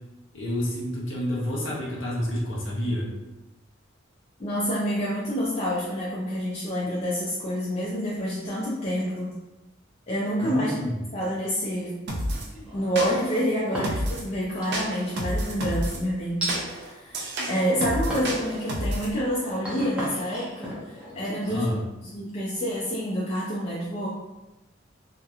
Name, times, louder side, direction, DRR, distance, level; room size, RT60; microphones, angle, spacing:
voice 1, 0.3-3.1 10.4-10.9 21.5-21.8, equal, 75° left, -4 dB, 0.6 m, -29 dB
voice 2, 4.4-9.3 10.1-10.7 11.1-11.9 12.7-20.7 21.1-21.7 22.0-24.1, equal, 35° left, -7 dB, 0.4 m, -28 dB
sound 1, 12.1-12.5 13.0-13.4 13.8-14.3 14.7-16.0 16.5-19.1, equal, 60° right, 0.4 m, -30 dB
sound 2, 12.3-13.0 13.5-14.2 14.6-15.2 16.4-16.6 17.3-17.7 18.1-18.4 18.9-22.6, right 1 dB, 5° right, 0.6 m, -35 dB
2.9 x 2.1 x 2.3 m, 1.0 s
head